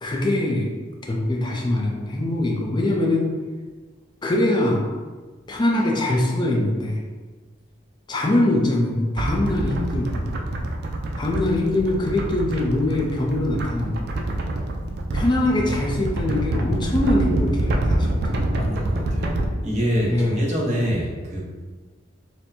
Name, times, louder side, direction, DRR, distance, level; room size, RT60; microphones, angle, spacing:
voice 1, 0.0-0.7 1.1-3.3 4.2-4.9 5.5-7.0 8.1-10.3 11.2-14.1 15.1-18.6 20.1-20.4, left 1 dB, 25° left, -1 dB, 0.5 m, -23 dB
sound 1, 9.2-19.5, right 1 dB, 55° right, 0.4 m, -26 dB
voice 2, 18.6-19.4 19.6-21.4, equal, 35° right, -5 dB, 0.8 m, -25 dB
4.3 x 2.1 x 2.6 m, 1.4 s
head